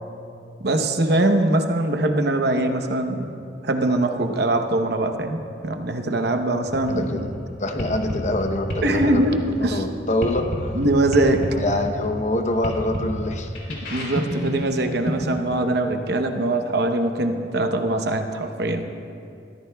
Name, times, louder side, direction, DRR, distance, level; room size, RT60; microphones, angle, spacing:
voice 1, 0.6-3.3 3.6-7.3 8.8-9.4 9.6-9.8 10.7-11.4 13.9-18.8, right 1 dB, 60° right, 5 dB, 0.9 m, -22 dB
sound 1, 6.6-15.5, equal, 70° left, 3.4 m, -31 dB
voice 2, 6.9-10.8 11.5-13.9, left 1 dB, 40° left, 6 dB, 0.8 m, -26 dB
22.0 x 14.5 x 2.3 m, 2.6 s
head